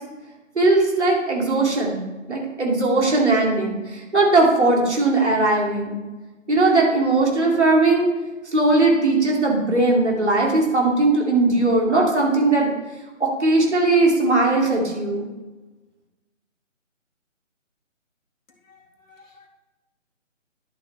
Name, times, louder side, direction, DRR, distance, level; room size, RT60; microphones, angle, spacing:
voice 1, 0.6-2.0 2.3-6.0 6.5-8.1 8.5-12.7 13.2-15.3, right 2 dB, 60° right, -1 dB, 2.5 m, -19 dB
voice 2, 18.6-19.5, left 4 dB, 80° left, 0 dB, 2.0 m, -53 dB
11.5 x 6.2 x 3.3 m, 1.2 s
figure-of-eight pair, 150°, 39 cm